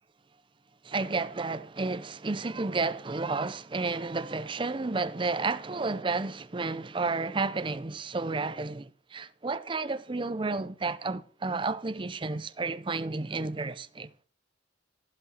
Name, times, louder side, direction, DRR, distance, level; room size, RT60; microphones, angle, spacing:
voice 1, 0.8-14.1, right 3 dB, 25° right, 0.5 m, -31 dB
15.0 x 7.5 x 4.3 m
head